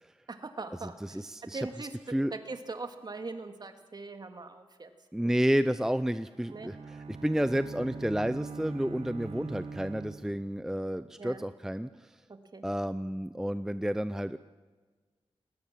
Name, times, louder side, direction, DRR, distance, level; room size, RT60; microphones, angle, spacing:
voice 1, 0.3-4.9 5.2-5.3 6.5-6.7 11.2-11.4 12.3-12.6, right 3 dB, 45° right, 6 dB, 2.2 m, -41 dB
voice 2, 1.0-2.3 5.1-12.2 12.6-14.4, equal, 5° right, 12 dB, 0.6 m, -31 dB
Bowed string instrument, 6.2-10.9, right 4 dB, 70° right, 1.4 m, -43 dB
21.0 x 18.0 x 7.5 m, 1.4 s
cardioid pair, 75°, 10 cm